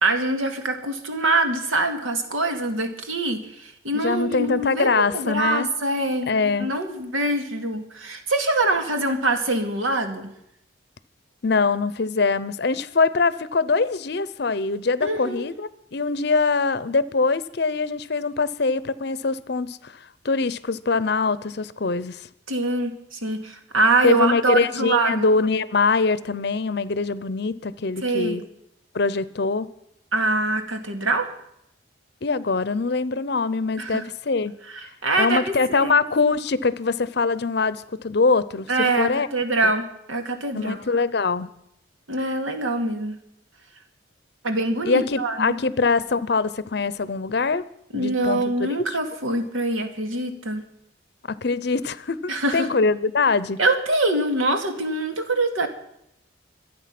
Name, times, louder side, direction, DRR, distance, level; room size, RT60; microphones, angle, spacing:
voice 1, 0.0-10.3 15.0-15.5 22.5-25.3 28.0-28.4 30.1-31.3 33.8-34.1 34.7-35.9 38.7-40.8 42.1-43.2 44.4-45.6 47.9-50.6 52.3-52.7 53.6-55.7, right 2 dB, 90° right, 6 dB, 2.3 m, -24 dB
voice 2, 3.9-5.7 6.3-6.7 11.4-20.0 20.2-22.3 24.0-28.4 28.9-29.7 32.2-34.5 35.2-39.3 40.5-41.5 44.9-47.7 47.9-49.0 51.3-53.6, left 4 dB, 55° left, 17 dB, 0.6 m, -23 dB
25.0 x 8.9 x 6.0 m, 0.78 s
head